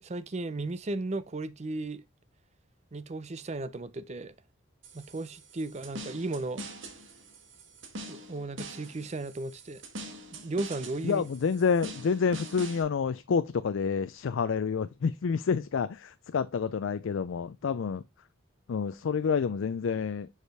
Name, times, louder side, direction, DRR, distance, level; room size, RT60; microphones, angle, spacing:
voice 1, 0.0-2.0 2.9-4.3 4.9-6.6 8.1-9.8 10.3-11.2, right 2 dB, 35° right, 0.5 m, -35 dB
sound 1, 4.8-12.8, right 1 dB, 70° right, 1.5 m, -44 dB
voice 2, 11.0-18.0 18.7-20.3, left 6 dB, 70° left, 0.4 m, -28 dB
6.6 x 4.9 x 3.3 m
head